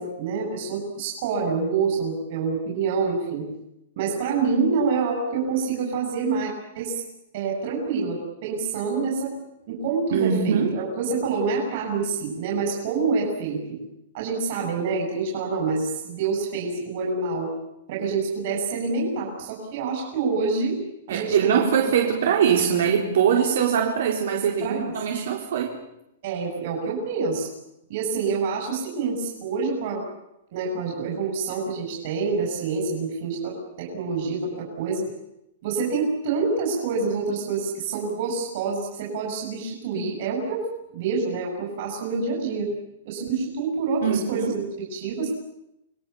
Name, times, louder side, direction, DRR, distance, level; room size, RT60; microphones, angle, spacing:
voice 1, 0.0-3.5 4.0-7.0 7.3-9.3 9.7-13.8 14.1-17.5 17.9-20.8 21.1-21.7 24.6-24.9 26.2-27.5 27.9-30.0 30.5-35.1 35.6-40.6 40.9-42.7 43.0-44.6 44.9-45.3, right 4 dB, 45° right, -1 dB, 8.0 m, -27 dB
voice 2, 10.1-10.7 21.1-25.8 44.0-44.5, right 7 dB, 70° right, 0 dB, 4.3 m, -22 dB
29.0 x 21.5 x 7.2 m, 0.85 s
hypercardioid pair, 165°, 0 cm